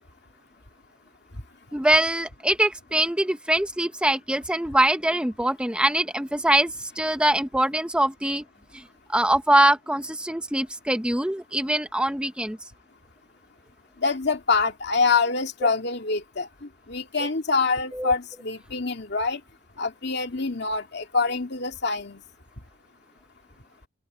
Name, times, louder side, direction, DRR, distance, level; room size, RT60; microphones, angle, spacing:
voice 1, 1.7-8.4 8.7-8.8 9.1-12.6 15.6-15.7 17.9-18.1, right 1 dB, 5° right, 1.0 m, -23 dB
voice 2, 14.0-16.5 16.9-19.4 19.8-22.2, left 4 dB, 60° left, 2.5 m, -25 dB
head